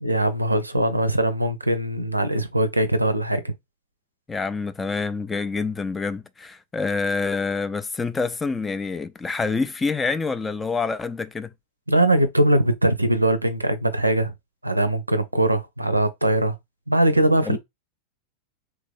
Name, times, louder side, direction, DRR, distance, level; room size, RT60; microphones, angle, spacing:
voice 1, 0.0-3.5 11.9-14.3 14.6-16.6 16.9-17.6, right 1 dB, 85° right, 0.5 m, -21 dB
voice 2, 4.3-11.5 17.5-17.6, left 4 dB, 15° left, 0.3 m, -27 dB
3.3 x 2.5 x 3.4 m
figure-of-eight pair, 90°, 0 cm